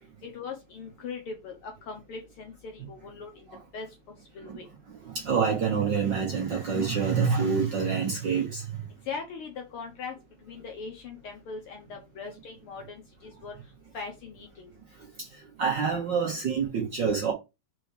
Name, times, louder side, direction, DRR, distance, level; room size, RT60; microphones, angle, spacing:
voice 1, 0.2-3.3 3.7-3.9 4.3-4.6 9.1-10.1 10.5-13.6 13.9-14.7, left 5 dB, 60° left, 1.5 m, -40 dB
voice 2, 5.1-8.7 15.2-17.3, right 6 dB, 55° right, 1.3 m, -27 dB
4.8 x 4.5 x 4.8 m
omnidirectional pair, 3.4 m